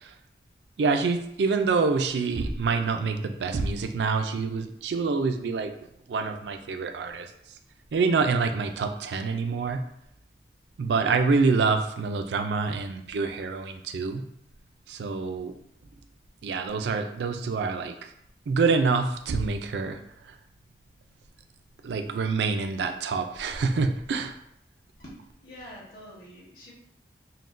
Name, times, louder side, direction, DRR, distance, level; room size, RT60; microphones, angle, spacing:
voice 1, 0.8-5.7 6.1-7.3 7.9-9.8 10.8-14.2 14.9-15.5 16.4-18.1 18.5-20.3 21.8-24.3, right 4 dB, 80° right, 7 dB, 0.4 m, -26 dB
voice 2, 25.0-26.7, equal, 55° left, -6 dB, 1.2 m, -46 dB
5.7 x 2.1 x 2.5 m, 0.74 s
head